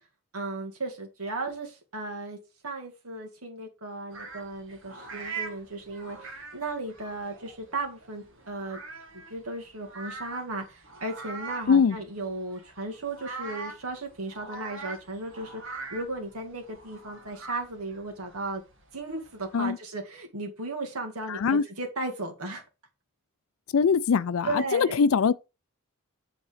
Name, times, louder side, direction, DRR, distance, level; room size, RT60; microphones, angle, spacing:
voice 1, 0.3-2.4 2.6-8.8 9.1-18.6 18.9-22.6 24.4-25.0, right 2 dB, 90° right, 2.0 m, -35 dB
sound 1, 4.1-19.6, right 4 dB, 60° right, 1.7 m, -43 dB
voice 2, 21.3-21.6 23.7-25.3, left 6 dB, 70° left, 0.4 m, -22 dB
8.3 x 3.9 x 5.0 m
head